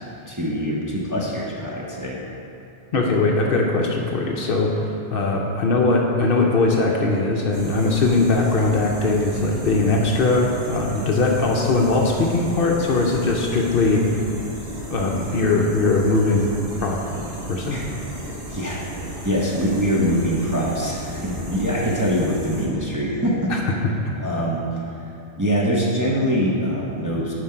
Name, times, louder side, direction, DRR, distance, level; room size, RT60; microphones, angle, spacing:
voice 1, 0.3-2.2 17.7-17.8 18.5-18.8 19.2-23.5 24.2-24.6 25.4-27.3, equal, 20° right, -5 dB, 0.7 m, -23 dB
voice 2, 2.9-14.2 14.9-16.5 16.8-17.0 17.5-17.8 23.5-23.6, left 3 dB, 60° left, 0 dB, 0.8 m, -20 dB
sound 1, 7.5-22.7, equal, 40° right, 1.5 m, -34 dB
7.4 x 5.2 x 4.4 m, 2.8 s
omnidirectional pair, 1.2 m